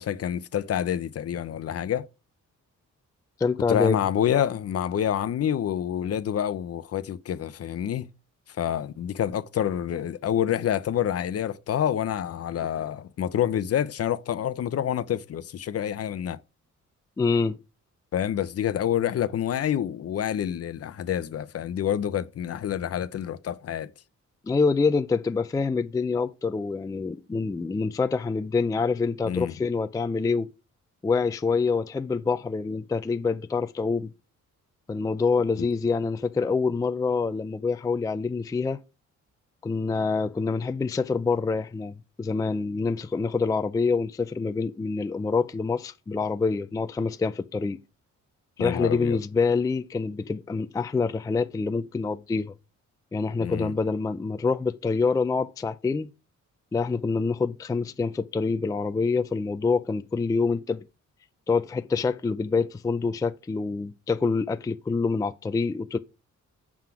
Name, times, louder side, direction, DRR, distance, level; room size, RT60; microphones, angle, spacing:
voice 1, 0.0-2.1 3.7-8.1 8.6-16.4 18.1-23.9 29.2-29.5 35.6-35.7 48.6-49.2 53.4-53.7, left 10 dB, 50° left, 0.6 m, -27 dB
voice 2, 3.4-4.0 17.2-17.6 24.5-30.5 31.0-34.1 34.9-38.8 39.6-47.8 48.6-52.5 53.1-56.1 56.7-60.8 61.5-66.0, left 4 dB, 10° left, 0.3 m, -26 dB
7.4 x 5.8 x 4.8 m
cardioid pair, 140°, 30 cm